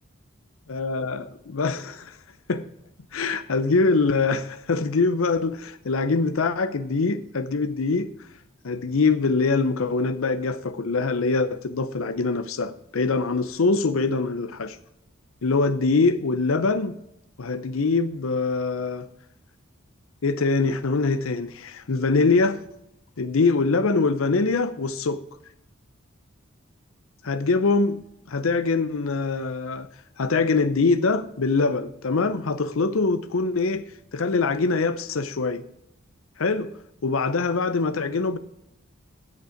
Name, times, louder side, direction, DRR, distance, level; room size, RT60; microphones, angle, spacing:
voice 1, 0.7-2.2 2.5-2.6 3.1-8.1 8.6-14.8 15.4-17.0 17.4-19.1 20.2-22.7 23.2-25.2 27.2-28.0 28.3-29.9 30.2-33.8 34.1-35.6 36.4-36.7 37.0-38.4, left 3 dB, 85° left, 0.7 m, -23 dB
16.0 x 5.5 x 5.0 m
head